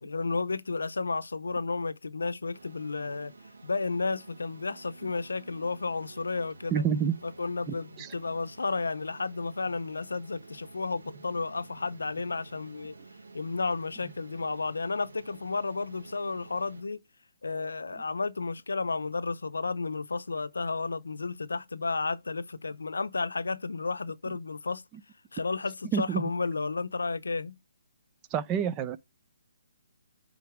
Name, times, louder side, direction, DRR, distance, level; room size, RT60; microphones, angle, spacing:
voice 1, 0.0-3.3 3.6-6.8 7.2-12.9 13.3-17.0 17.4-24.8 25.3-27.6, left 4 dB, 90° left, 0.6 m, -32 dB
sound 1, 2.5-16.8, right 3 dB, 85° right, 1.4 m, -51 dB
voice 2, 6.7-7.1 7.7-8.1 25.9-26.2 28.3-29.0, right 7 dB, 20° right, 0.6 m, -28 dB
9.3 x 3.9 x 3.4 m
hypercardioid pair, 150°, 0 cm